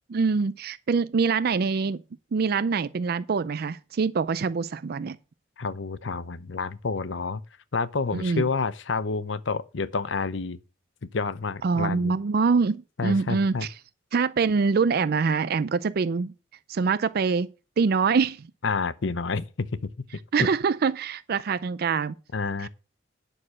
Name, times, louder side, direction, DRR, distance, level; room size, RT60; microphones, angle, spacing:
voice 1, 0.1-2.0 2.3-5.2 8.1-8.5 11.6-13.7 14.1-16.3 16.7-17.5 17.8-18.5 20.3-22.1 22.6-22.7, right 5 dB, 55° right, 0.4 m, -24 dB
voice 2, 5.6-7.4 7.7-10.6 11.1-12.1 13.0-13.7 18.6-19.9 20.4-20.5 22.3-22.7, left 4 dB, 80° left, 0.7 m, -29 dB
9.8 x 6.4 x 6.2 m
head